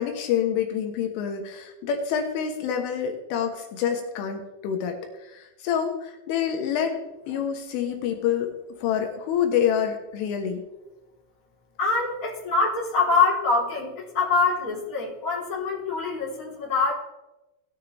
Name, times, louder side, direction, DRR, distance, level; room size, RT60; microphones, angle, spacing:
voice 1, 0.0-5.0 5.2-7.0 7.3-8.5 8.8-10.6, left 8 dB, 80° left, 4 dB, 3.7 m, -27 dB
voice 2, 11.8-16.9, left 4 dB, 20° left, -6 dB, 3.5 m, -24 dB
18.0 x 9.4 x 3.4 m, 0.99 s
omnidirectional pair, 5.7 m